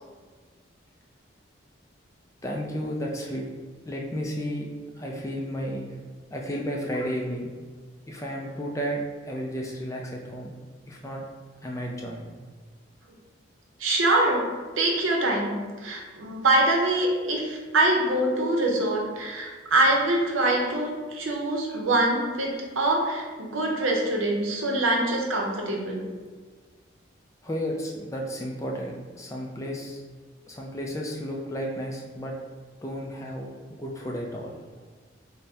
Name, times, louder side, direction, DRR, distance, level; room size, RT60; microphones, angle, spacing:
voice 1, 2.4-3.5 3.9-4.7 5.0-6.0 6.3-7.5 8.1-10.5 10.9-11.3 11.6-12.3 27.4-30.0 30.5-32.4 32.8-34.6, equal, 15° left, -1 dB, 0.4 m, -33 dB
voice 2, 13.8-14.5 14.8-26.1, right 2 dB, 85° right, 0 dB, 0.7 m, -24 dB
3.4 x 2.1 x 4.2 m, 1.4 s
head